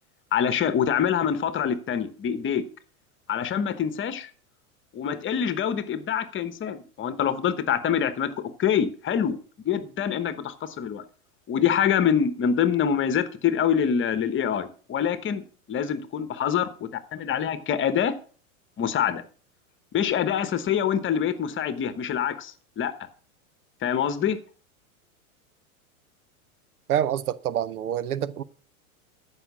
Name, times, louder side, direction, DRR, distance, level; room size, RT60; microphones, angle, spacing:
voice 1, 0.3-2.6 3.3-4.3 4.9-9.4 9.6-11.0 11.5-18.1 18.8-19.2 19.9-22.9 23.8-24.4, left 8 dB, 25° left, 1.1 m, -25 dB
voice 2, 26.9-28.4, right 10 dB, 90° right, 0.8 m, -26 dB
14.0 x 5.9 x 6.1 m
hypercardioid pair, 110°, 43 cm